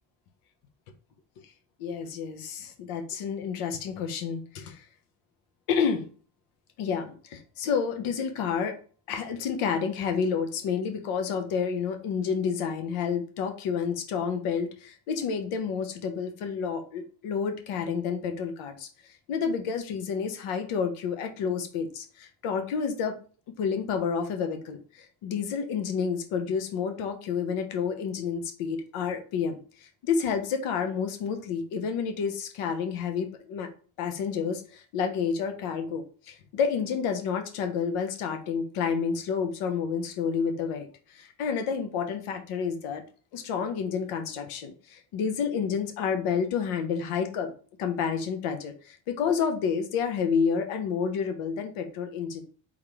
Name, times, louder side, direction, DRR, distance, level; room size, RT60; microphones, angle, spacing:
voice 1, 1.8-4.8 5.7-6.1 6.8-8.8 9.1-18.9 19.3-23.2 23.6-33.7 34.0-43.0 43.3-47.5 47.8-52.4, left 6 dB, 80° left, 6 dB, 1.0 m, -29 dB
3.7 x 3.2 x 3.5 m, 0.40 s
supercardioid pair, 65°, 49 cm